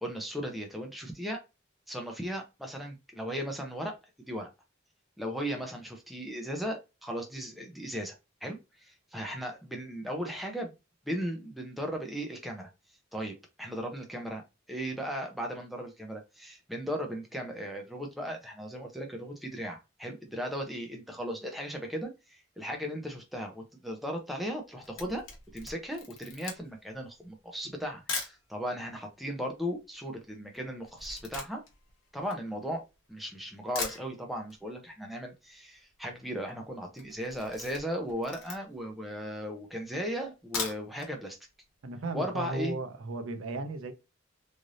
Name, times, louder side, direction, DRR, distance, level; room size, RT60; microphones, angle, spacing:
voice 1, 0.0-1.4 1.9-3.9 4.3-4.5 5.2-8.2 8.4-10.7 11.1-12.7 13.1-14.4 14.7-25.2 25.5-31.6 32.1-32.8 33.1-41.4 42.1-42.8, equal, ahead, 0.6 m, -37 dB
Camera, 24.8-28.4 29.1-29.2 29.4-33.1 33.4-33.5 33.7-34.6 34.9-35.0 35.3-35.4 35.5-36.0 36.3-36.5 36.9-38.9 39.4-39.5 40.3-41.1 41.5-41.6 41.9-42.0, left 4 dB, 80° left, 0.9 m, -40 dB
voice 2, 41.8-43.9, right 2 dB, 85° right, 0.6 m, -35 dB
3.2 x 2.6 x 2.5 m
head